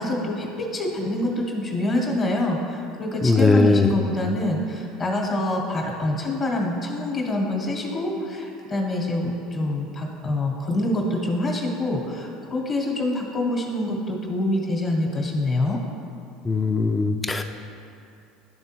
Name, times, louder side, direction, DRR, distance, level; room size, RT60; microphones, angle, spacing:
voice 1, 0.0-15.8, left 1 dB, 40° left, -2 dB, 0.9 m, -26 dB
voice 2, 3.2-3.9 16.5-17.4, left 3 dB, 20° left, 5 dB, 0.3 m, -19 dB
10.5 x 3.5 x 2.9 m, 2.6 s
supercardioid pair, 90°, 0 cm